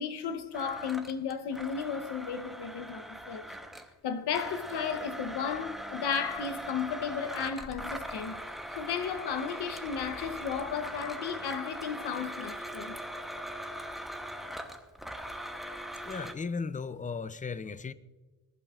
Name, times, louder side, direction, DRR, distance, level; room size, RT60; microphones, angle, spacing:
voice 1, 0.0-3.5 4.0-8.4 8.8-13.0, left 7 dB, 85° left, 1.0 m, -34 dB
Domestic sounds home sounds, 0.5-3.9 4.3-16.3, equal, ahead, 0.9 m, -40 dB
voice 2, 16.0-17.9, left 5 dB, 20° left, 0.4 m, -36 dB
20.5 x 12.0 x 2.4 m
cardioid pair, 100°, 39 cm